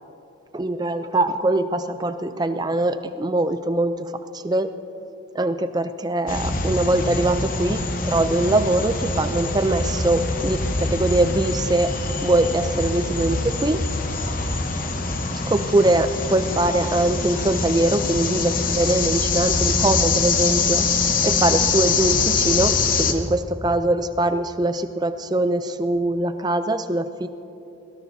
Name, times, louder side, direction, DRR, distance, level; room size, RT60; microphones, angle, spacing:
voice 1, 0.5-4.7 5.3-11.9 12.2-13.8 15.5-20.8 21.2-27.4, right 2 dB, 20° right, 10 dB, 0.4 m, -22 dB
sound 1, 6.3-23.1, left 4 dB, 40° left, 0.9 m, -24 dB
22.0 x 17.5 x 2.7 m, 2.9 s
head